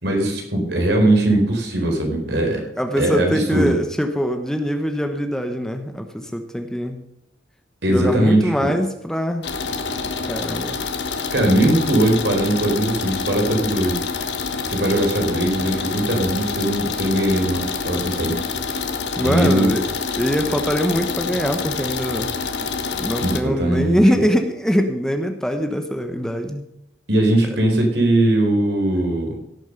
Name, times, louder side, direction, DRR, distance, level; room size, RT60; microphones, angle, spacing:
voice 1, 0.0-2.6 3.0-3.7 7.8-8.7 11.3-14.0 14.7-18.4 19.2-19.7 23.2-24.0 27.1-29.4, right 1 dB, 65° right, 2 dB, 4.1 m, -20 dB
voice 2, 2.5-7.0 7.9-9.5 10.3-10.8 19.2-19.8 20.2-22.4 22.9-26.6, equal, 5° left, 6 dB, 1.1 m, -23 dB
sound 1, 9.4-23.4, left 5 dB, 70° left, 1.4 m, -27 dB
17.0 x 7.5 x 6.6 m, 0.83 s
head